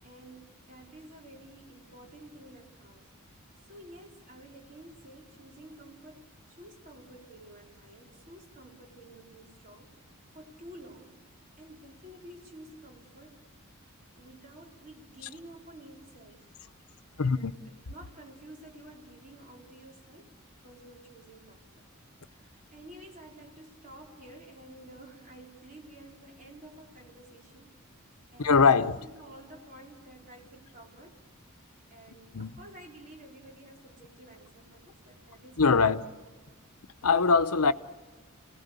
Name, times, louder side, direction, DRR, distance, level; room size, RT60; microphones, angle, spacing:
voice 1, 0.0-3.1 3.7-10.0 10.3-11.2 11.6-13.8 14.2-16.6 17.2-21.9 22.2-27.7 28.3-31.2 31.9-36.0, right 1 dB, 40° right, 4.3 m, -51 dB
voice 2, 17.2-17.5 28.4-29.0 32.1-32.5 35.6-36.0 37.0-37.7, left 5 dB, 85° left, 0.9 m, -23 dB
30.0 x 18.5 x 8.3 m
head